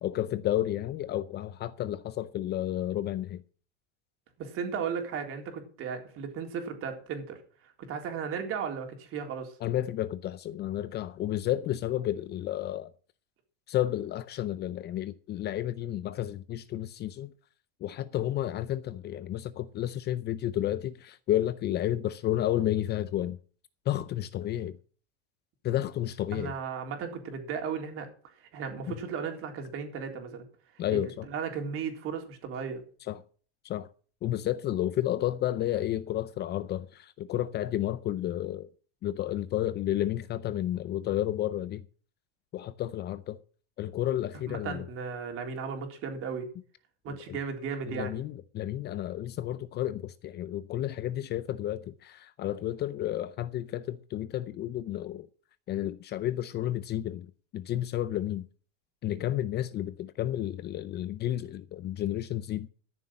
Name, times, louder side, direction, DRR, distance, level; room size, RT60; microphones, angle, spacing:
voice 1, 0.0-3.4 9.6-12.9 13.7-17.3 17.8-23.4 23.9-24.8 25.6-26.5 28.9-29.0 30.8-31.3 33.1-33.2 33.6-33.9 34.2-38.7 39.0-41.8 42.5-43.4 43.8-44.8 47.1-47.4 47.9-55.3 55.7-58.5 59.0-62.7, left 12 dB, 35° left, 0.6 m, -31 dB
voice 2, 4.4-9.5 26.3-30.4 30.7-31.0 31.3-32.8 44.3-46.5 47.0-48.2, right 6 dB, 45° right, 3.7 m, -36 dB
13.5 x 6.9 x 7.4 m
supercardioid pair, 130°, 31 cm